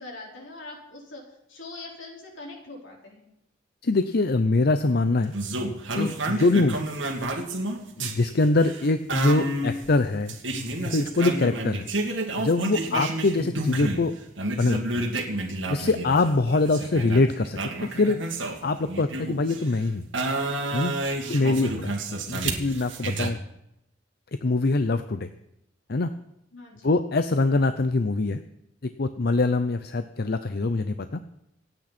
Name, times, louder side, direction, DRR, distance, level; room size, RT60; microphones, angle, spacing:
voice 1, 0.0-3.2 12.8-13.1 21.2-21.5 26.5-26.9, left 2 dB, 80° left, -1 dB, 4.6 m, -42 dB
voice 2, 3.8-5.3 6.0-6.9 8.0-10.4 10.8-11.9 12.4-14.1 14.6-15.1 15.7-18.2 18.6-20.1 20.7-20.9 21.3-21.9 22.3-23.4 24.4-25.3 25.9-26.1 26.8-28.4 29.0-31.2, left 3 dB, 55° left, 10 dB, 0.7 m, -23 dB
sound 1, 5.3-14.1 14.4-19.7 20.1-23.3, right 2 dB, 80° right, 2.4 m, -30 dB
27.0 x 9.1 x 4.3 m, 0.81 s
head